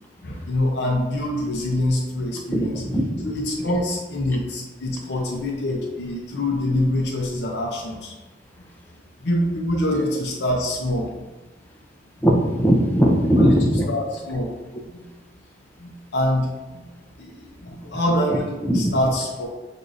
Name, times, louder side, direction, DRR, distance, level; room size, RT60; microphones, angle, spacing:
voice 1, 0.2-2.8 3.2-8.1 9.2-11.1 13.4-13.6 13.9-14.5 14.9-15.0 15.8-16.9 17.2-19.5, left 1 dB, 75° left, -1 dB, 0.7 m, -25 dB
voice 2, 2.5-3.2 3.6-3.8 9.9-10.1 12.2-13.9 18.6-18.9, equal, 10° left, 0 dB, 0.6 m, -19 dB
6.2 x 2.7 x 2.6 m, 1.2 s
head